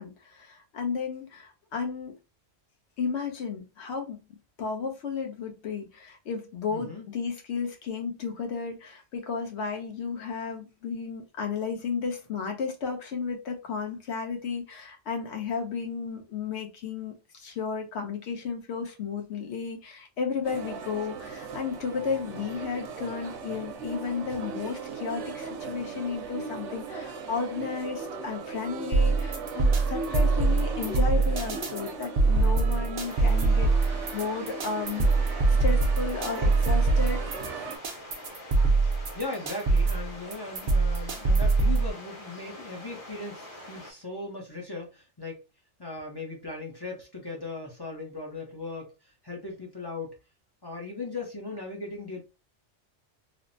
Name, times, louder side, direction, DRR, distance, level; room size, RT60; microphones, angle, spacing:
voice 1, 0.0-2.1 3.0-4.2 4.6-37.3, left 5 dB, 70° left, 1.0 m, -33 dB
voice 2, 6.7-7.1 38.8-45.4 45.8-50.2 50.6-52.2, left 3 dB, 30° left, 0.5 m, -38 dB
sound 1, 20.4-37.8, right 4 dB, 80° right, 1.0 m, -38 dB
sound 2, 28.9-41.9, right 3 dB, 50° right, 0.7 m, -23 dB
sound 3, 33.1-43.9, left 1 dB, 50° left, 0.9 m, -45 dB
3.2 x 2.0 x 2.5 m
omnidirectional pair, 1.2 m